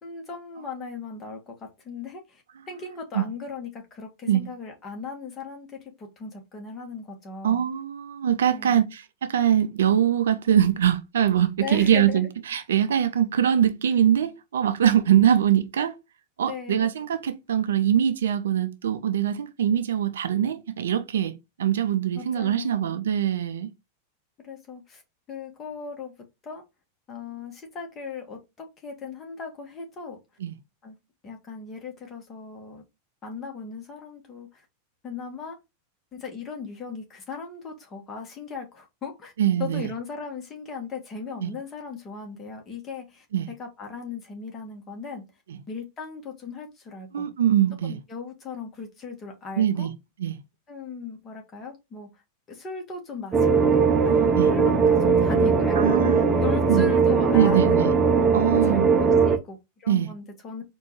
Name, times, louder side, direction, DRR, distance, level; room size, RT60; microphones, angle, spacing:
voice 1, 0.0-7.6 8.5-8.9 11.6-12.3 16.5-16.9 22.1-23.0 24.4-25.0 25.3-26.1 26.4-26.6 27.1-30.2 30.8-30.9 31.2-32.8 33.2-34.6 35.0-35.6 36.1-39.3 39.6-43.2 43.6-45.2 45.7-47.3 47.8-49.9 50.7-52.1 52.5-53.7 54.0-57.9 58.4-60.6, left 5 dB, 25° left, 1.6 m, -37 dB
voice 2, 7.4-16.0 16.4-23.7 30.4-30.6 39.4-39.9 41.4-41.5 43.3-43.5 45.5-45.6 47.1-48.0 49.6-49.9 50.2-50.4 54.0-54.5 55.8-56.4 56.7-56.9 57.3-57.9 58.3-58.9 59.9-60.1, right 10 dB, 65° right, 0.5 m, -23 dB
sound 1, 53.3-59.4, right 5 dB, 15° right, 0.8 m, -20 dB
4.3 x 2.7 x 4.6 m
figure-of-eight pair, 90°, 0 cm